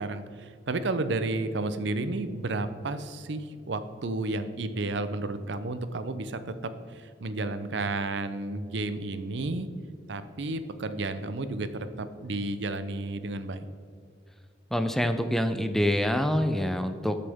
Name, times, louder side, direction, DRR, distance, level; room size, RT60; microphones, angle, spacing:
voice 1, 0.0-6.5 6.9-9.7 10.1-13.7, right 2 dB, 70° right, 11 dB, 0.6 m, -32 dB
voice 2, 14.7-17.2, equal, ahead, 8 dB, 0.4 m, -26 dB
13.0 x 6.8 x 3.5 m, 2.2 s
head